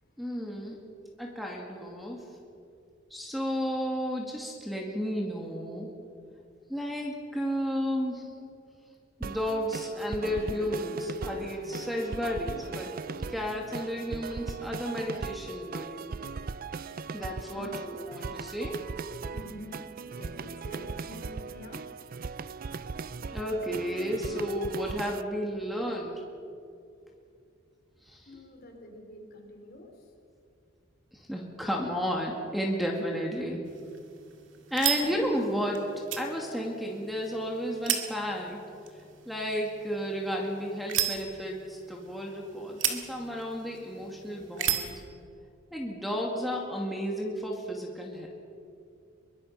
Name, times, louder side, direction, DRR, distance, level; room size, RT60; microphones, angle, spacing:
voice 1, 0.2-0.8 1.2-2.2 3.1-5.9 6.7-8.3 9.2-13.0 13.3-16.1 17.1-18.8 23.3-26.2 28.1-28.3 31.1-33.6 34.7-35.8 36.2-38.6 39.3-44.9 45.7-48.3, equal, ahead, 0 dB, 2.3 m, -32 dB
sound 1, 9.2-25.2, right 4 dB, 45° right, 0.5 m, -39 dB
voice 2, 19.3-22.0 28.3-30.1 44.2-44.3, left 1 dB, 50° left, 3 dB, 3.7 m, -47 dB
sound 2, 33.6-45.0, right 9 dB, 65° right, 2.2 m, -36 dB
23.0 x 22.5 x 5.8 m, 2.4 s
head